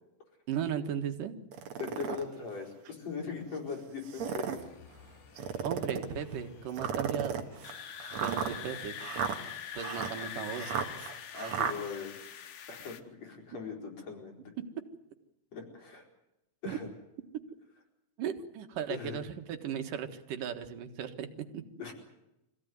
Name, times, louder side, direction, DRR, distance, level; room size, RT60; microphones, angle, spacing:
voice 1, 0.5-1.3 5.6-7.4 8.2-9.0 9.8-10.7 16.6-16.8 18.2-21.3 21.5-21.6, right 8 dB, 85° right, 7 dB, 3.3 m, -36 dB
sound 1, 1.5-2.2 2.9-3.0 4.0-4.7 5.4-6.1 6.8-11.7, right 7 dB, 60° right, 2.7 m, -35 dB
voice 2, 1.8-4.6 11.3-12.2 12.7-14.4 15.5-16.0 16.6-16.9 18.9-19.2 21.8-21.9, left 5 dB, 55° left, 1 dB, 5.5 m, -40 dB
sound 2, 4.2-13.0, left 9 dB, 75° left, 2.9 m, -45 dB
25.0 x 16.0 x 9.4 m, 0.91 s
omnidirectional pair, 3.7 m